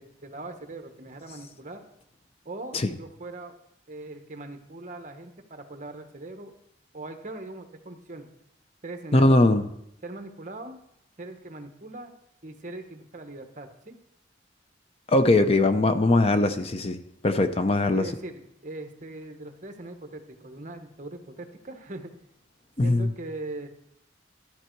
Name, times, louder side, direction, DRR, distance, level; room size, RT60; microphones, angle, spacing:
voice 1, 0.0-1.8 2.4-3.5 3.9-6.5 6.9-8.3 8.8-9.4 10.0-10.8 11.2-12.1 12.4-13.9 15.2-15.7 17.9-22.1 22.8-23.7, right 2 dB, 40° right, 6 dB, 1.1 m, -40 dB
voice 2, 9.1-9.6 15.1-18.0 22.8-23.1, left 2 dB, 30° left, 9 dB, 0.6 m, -21 dB
13.0 x 8.9 x 4.6 m, 0.77 s
head